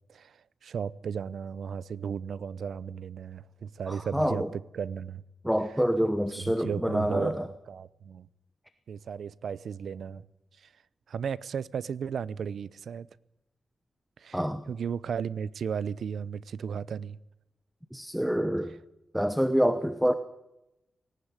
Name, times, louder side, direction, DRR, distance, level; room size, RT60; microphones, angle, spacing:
voice 1, 0.1-5.2 6.4-8.3 8.9-10.3 10.6-10.7 11.1-13.1 14.2-14.4 14.7-17.2, right 7 dB, 80° right, 0.7 m, -35 dB
voice 2, 3.9-4.5 5.4-7.5 14.3-14.6 17.9-18.7 19.1-20.1, equal, ahead, 1.1 m, -27 dB
18.5 x 18.0 x 9.8 m
wide cardioid pair, 130°, 0 cm